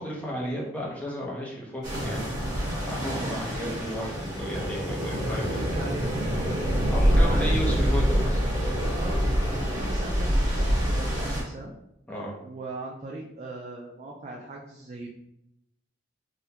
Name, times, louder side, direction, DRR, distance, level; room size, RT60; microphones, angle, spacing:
voice 1, 0.0-2.6 2.9-5.8 6.6-8.4 12.1-12.4, equal, 5° left, -4 dB, 0.6 m, -34 dB
sound 1, 1.8-11.4, equal, 20° right, 1.2 m, -26 dB
voice 2, 3.0-3.4 3.6-3.8 4.8-6.3 7.0-7.6 8.9-11.7 12.4-15.1, right 2 dB, 35° right, -2 dB, 0.3 m, -39 dB
3.6 x 2.1 x 2.8 m, 0.79 s
head